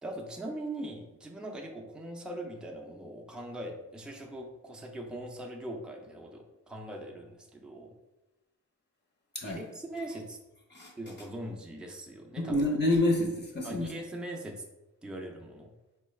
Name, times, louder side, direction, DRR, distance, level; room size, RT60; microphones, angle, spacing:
voice 1, 0.0-7.9 9.4-10.4 11.0-12.6 13.6-14.6 15.0-15.7, right 1 dB, 5° right, 1 dB, 0.4 m, -41 dB
voice 2, 12.4-13.9, left 1 dB, 35° left, -1 dB, 0.8 m, -28 dB
4.3 x 2.3 x 3.1 m, 0.98 s
wide cardioid pair, 110°, 31 cm